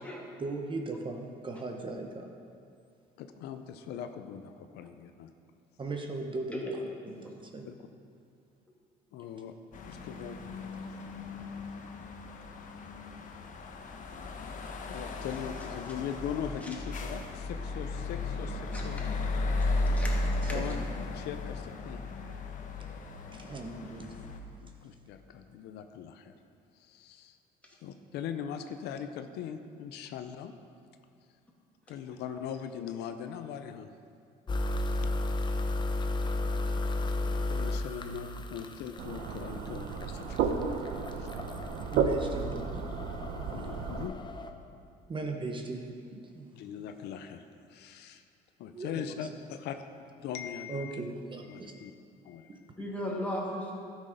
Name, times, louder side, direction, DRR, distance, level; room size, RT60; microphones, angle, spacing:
voice 1, 0.4-2.3 5.8-6.8 7.0-7.7 20.4-20.8 23.3-24.4 41.9-42.8 45.1-46.5 48.7-49.3 50.7-51.7 52.5-52.6, right 3 dB, 30° right, 3 dB, 0.9 m, -38 dB
voice 2, 3.2-5.3 7.6-7.8 9.1-9.5 9.8-10.4 14.9-19.0 20.5-20.8 21.1-22.0 22.9-23.0 24.6-26.4 26.8-27.4 27.8-30.5 31.9-33.9 35.1-35.2 37.5-40.5 41.2-41.3 43.5-44.2 46.5-47.4 47.7-48.2 48.6-49.8 50.2-51.0 51.5-51.9 52.2-52.5, left 8 dB, 80° left, 8 dB, 0.6 m, -40 dB
sound 1, 9.7-24.4, left 2 dB, 50° left, 1.0 m, -35 dB
voice 3, 20.0-20.5 52.8-53.7, left 1 dB, 10° left, -3 dB, 2.1 m, -36 dB
sound 2, 34.5-44.5, left 2 dB, 25° left, 0.7 m, -34 dB
sound 3, 39.0-44.1, right 6 dB, 80° right, 0.7 m, -33 dB
12.0 x 6.3 x 5.1 m, 2.3 s
cardioid pair, 110°, 17 cm